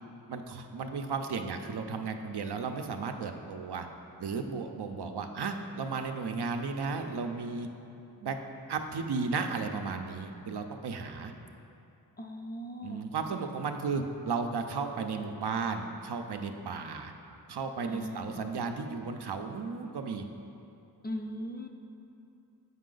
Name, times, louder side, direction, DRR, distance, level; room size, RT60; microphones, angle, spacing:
voice 1, 0.3-3.9 4.2-7.7 8.2-8.3 8.7-11.3 12.8-17.1 17.5-20.2, right 4 dB, 70° right, 5 dB, 0.6 m, -34 dB
voice 2, 12.2-13.0 17.9-18.4 21.0-21.7, left 1 dB, 25° left, 3 dB, 0.5 m, -39 dB
7.4 x 5.5 x 3.9 m, 2.8 s
cardioid pair, 45°, 42 cm